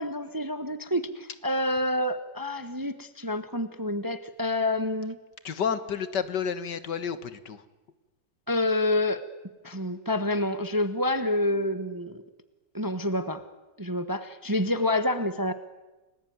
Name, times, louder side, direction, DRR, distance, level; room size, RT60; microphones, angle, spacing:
voice 1, 0.0-5.1 8.5-9.2 9.6-12.2 12.7-13.4 13.8-15.5, left 1 dB, 15° right, 11 dB, 1.0 m, -28 dB
voice 2, 5.4-7.6, left 7 dB, 70° left, 13 dB, 2.0 m, -30 dB
30.0 x 20.5 x 9.4 m, 1.1 s
omnidirectional pair, 1.9 m